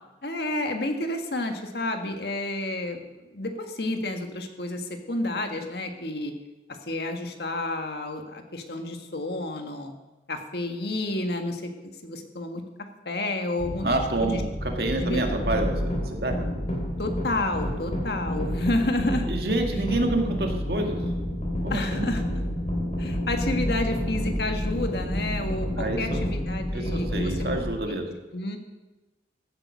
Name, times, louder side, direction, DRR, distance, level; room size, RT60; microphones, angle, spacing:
voice 1, 0.2-6.3 6.7-9.9 10.3-12.6 13.1-13.9 14.2-14.4 15.0-15.4 17.0-19.3 21.7-22.2 23.0-28.0 28.3-28.6, left 2 dB, 60° left, 5 dB, 1.7 m, -30 dB
sound 1, 13.6-27.6, equal, 35° left, 3.1 m, -29 dB
voice 2, 13.8-16.4 19.3-21.0 21.6-22.1 25.8-26.2 26.7-28.1, right 2 dB, 60° right, 3 dB, 2.0 m, -28 dB
15.5 x 8.9 x 6.3 m, 1.1 s
head